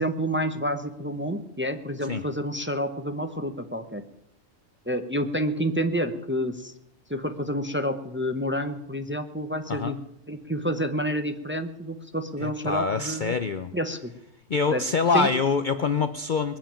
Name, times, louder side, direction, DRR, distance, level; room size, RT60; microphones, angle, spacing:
voice 1, 0.0-4.0 4.9-6.7 7.1-9.9 10.3-13.3 13.7-14.1 14.7-14.8 15.1-15.3, equal, 10° right, 7 dB, 0.8 m, -29 dB
voice 2, 12.4-13.7 14.5-16.6, left 5 dB, 50° left, 10 dB, 0.6 m, -25 dB
20.5 x 7.4 x 8.8 m, 0.83 s
omnidirectional pair, 1.4 m